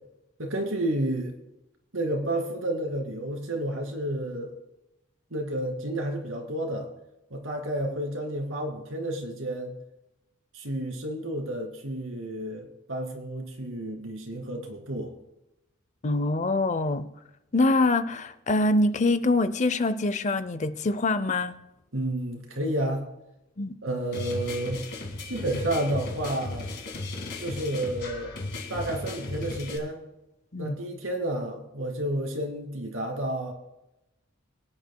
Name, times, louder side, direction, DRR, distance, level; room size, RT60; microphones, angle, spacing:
voice 1, 0.4-1.4 1.9-4.6 5.3-6.9 7.3-9.7 10.5-15.1 21.9-23.1 23.8-24.8 25.2-26.7 27.4-30.0 30.6-33.5, right 1 dB, 75° right, 2.5 m, -31 dB
voice 2, 16.0-17.1 17.5-21.5 23.6-23.8 30.5-30.8, left 2 dB, 35° left, 0.5 m, -24 dB
sound 1, 24.1-29.8, left 2 dB, 50° left, 1.8 m, -36 dB
22.5 x 9.8 x 2.2 m
head